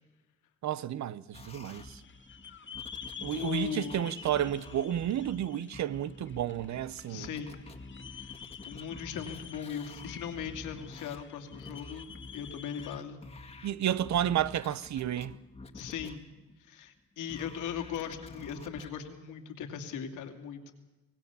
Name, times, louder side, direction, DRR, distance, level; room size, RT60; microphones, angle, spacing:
voice 1, 0.6-2.0 3.2-7.3 13.6-15.3, right 11 dB, 65° right, 1.0 m, -31 dB
sound 1, 1.3-16.9 17.3-18.9, left 3 dB, 20° left, 1.8 m, -49 dB
sound 2, 1.7-13.0, left 7 dB, 40° left, 2.1 m, -49 dB
voice 2, 3.3-4.1 7.1-7.6 8.1-8.4 8.6-13.2 15.7-16.2 16.6-20.7, left 8 dB, 85° left, 2.7 m, -39 dB
24.5 x 18.0 x 7.1 m
cardioid pair, 90°, 30 cm